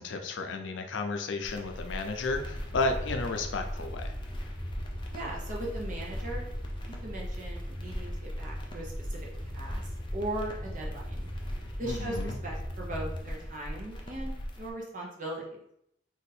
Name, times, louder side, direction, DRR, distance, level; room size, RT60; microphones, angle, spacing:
voice 1, 0.0-4.1 11.8-12.4, left 3 dB, 85° left, 5 dB, 0.5 m, -33 dB
sound 1, 1.4-14.7, equal, 25° left, 0.4 m, -41 dB
sound 2, 2.3-13.2, equal, 25° right, 1.5 m, -39 dB
voice 2, 5.1-6.4 7.0-9.2 9.5-9.8 10.1-11.2 11.8-15.5, right 1 dB, 45° right, -2 dB, 0.9 m, -38 dB
2.7 x 2.4 x 4.1 m, 0.75 s
head